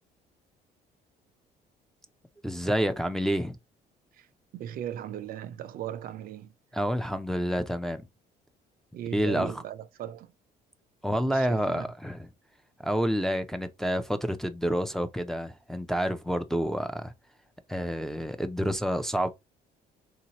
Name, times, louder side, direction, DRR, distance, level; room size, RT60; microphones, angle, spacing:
voice 1, 2.4-3.6 6.7-8.1 9.1-9.6 11.0-12.3 12.8-17.1 17.7-19.3, equal, ahead, 0.4 m, -28 dB
voice 2, 4.5-6.5 8.9-10.3 11.2-11.9, right 10 dB, 60° right, 0.4 m, -37 dB
3.7 x 2.8 x 2.8 m
cardioid pair, 110°, 17 cm